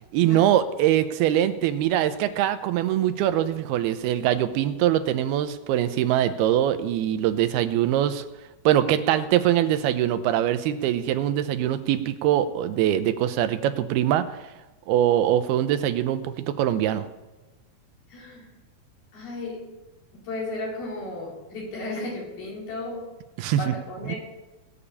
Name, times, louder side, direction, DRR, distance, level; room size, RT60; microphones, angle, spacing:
voice 1, 0.1-8.2 8.7-14.3 14.9-17.1 23.4-23.7 24.1-24.2, right 11 dB, 90° right, 11 dB, 2.7 m, -23 dB
voice 2, 18.1-18.5 19.1-19.6 20.1-23.1 23.6-24.2, left 2 dB, 70° left, -4 dB, 6.4 m, -34 dB
18.5 x 6.9 x 8.6 m, 1.1 s
omnidirectional pair, 4.5 m